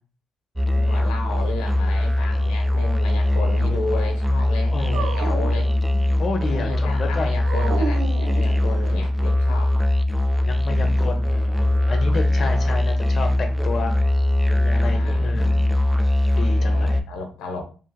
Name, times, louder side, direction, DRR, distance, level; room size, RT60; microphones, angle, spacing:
Musical instrument, 0.6-17.0, left 1 dB, 5° right, 0.3 m, -21 dB
voice 1, 0.7-5.7 6.5-9.7 10.7-11.0 14.8-15.7 16.4-17.6, left 3 dB, 90° left, 3 dB, 0.6 m, -33 dB
voice 2, 4.7-5.1 6.2-7.3 8.7-8.9 10.4-13.9 14.5-15.6 16.4-17.0, left 3 dB, 50° left, 5 dB, 0.7 m, -30 dB
Dog, 4.9-6.3 7.4-9.1, right 5 dB, 85° right, 0.5 m, -31 dB
2.8 x 2.7 x 2.3 m, 0.37 s
supercardioid pair, 65°, 0 cm